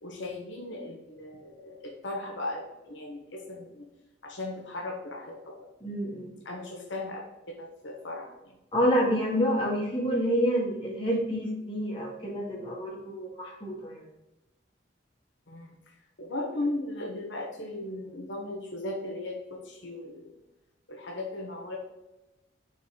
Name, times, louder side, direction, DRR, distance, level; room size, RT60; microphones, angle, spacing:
voice 1, 0.0-3.9 4.2-5.7 6.4-7.2 7.6-8.6 15.5-15.7 16.2-20.3 20.9-21.8, left 2 dB, 75° left, 1 dB, 1.3 m, -37 dB
voice 2, 5.8-6.3 8.7-14.0, equal, 25° left, -3 dB, 2.1 m, -28 dB
6.3 x 4.6 x 5.2 m, 0.96 s
head